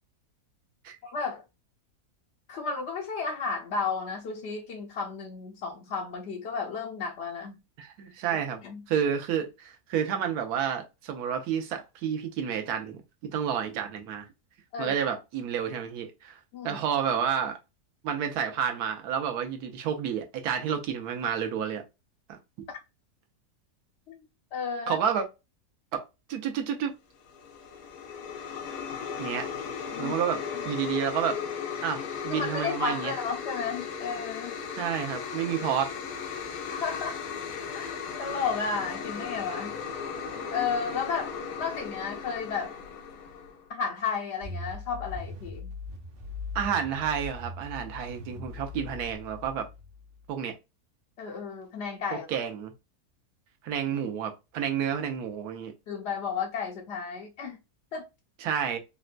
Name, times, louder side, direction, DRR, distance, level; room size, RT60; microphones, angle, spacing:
voice 1, 1.0-1.4 2.5-7.6 8.6-8.8 14.7-14.9 16.5-16.8 24.1-24.2 24.5-25.0 29.9-30.1 32.3-34.5 36.7-37.2 37.7-39.7 40.5-42.7 43.7-45.7 48.3-48.4 51.2-52.3 55.9-57.6 57.9-58.1, left 5 dB, 70° left, 0.6 m, -33 dB
voice 2, 7.8-8.6 8.9-14.2 14.8-16.4 16.6-17.6 18.0-21.8 22.3-22.7 24.9-25.2 25.9-26.0 26.3-26.9 29.2-29.5 30.0-31.4 31.8-33.1 34.8-35.9 46.5-49.7 50.3-50.5 52.1-52.7 53.6-55.7 58.4-58.8, right 8 dB, 75° right, 1.2 m, -30 dB
sound 1, 27.2-43.7, left 6 dB, 90° left, 1.3 m, -36 dB
sound 2, 44.4-50.3, left 3 dB, 55° right, 0.6 m, -40 dB
4.1 x 2.1 x 2.4 m
omnidirectional pair, 1.7 m